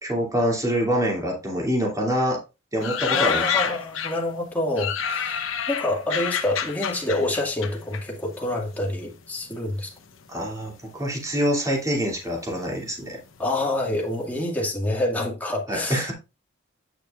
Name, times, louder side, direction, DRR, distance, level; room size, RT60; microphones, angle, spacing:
voice 1, 0.0-2.4 2.7-3.7 10.3-13.2 15.7-16.1, equal, 15° right, 2.7 m, -25 dB
sound 1, 2.8-4.3 4.8-8.6 8.9-9.8 10.4-11.0 11.2-11.3 11.5-13.9 14.2-14.3, left 7 dB, 65° left, 0.9 m, -29 dB
voice 2, 3.1-9.9 13.4-16.1, left 1 dB, 10° left, 2.1 m, -27 dB
9.1 x 6.8 x 2.5 m
head